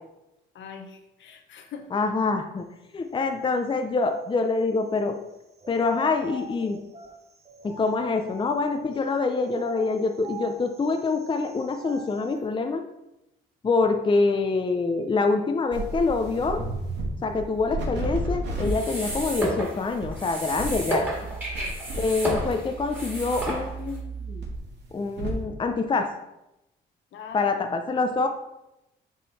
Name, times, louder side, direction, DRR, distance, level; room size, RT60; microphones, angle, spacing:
voice 1, 0.5-1.9 21.5-21.8 27.1-27.7, left 6 dB, 70° left, 5 dB, 1.0 m, -42 dB
voice 2, 1.9-2.7 2.9-5.2 5.7-6.8 7.6-12.8 13.6-16.6 17.2-21.0 21.9-24.4 24.9-26.1 27.3-28.3, left 3 dB, 25° left, 6 dB, 0.6 m, -25 dB
sound 1, 5.6-9.0 9.5-12.4, right 1 dB, 30° right, 0.9 m, -43 dB
sound 2, 15.7-17.1 17.3-18.7 19.1-19.3 19.8-20.1 20.5-22.0 22.3-25.4, right 2 dB, 60° right, 2.2 m, -33 dB
sound 3, 18.6-24.0, equal, 10° right, 2.5 m, -32 dB
7.4 x 3.8 x 4.1 m, 0.91 s
cardioid pair, 90°, 20 cm